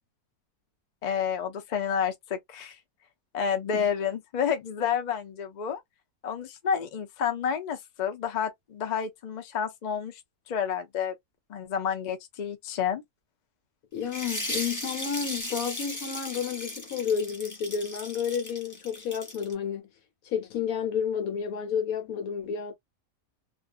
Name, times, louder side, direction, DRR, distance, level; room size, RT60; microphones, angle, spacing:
voice 1, 1.0-2.8 3.3-5.8 6.2-10.2 10.5-11.2 11.5-13.0, left 7 dB, 90° left, 0.3 m, -30 dB
voice 2, 13.9-19.9 20.2-22.7, left 7 dB, 70° left, 1.2 m, -31 dB
sound 1, 14.1-19.5, left 1 dB, 15° left, 0.7 m, -36 dB
2.6 x 2.5 x 2.3 m
omnidirectional pair, 1.6 m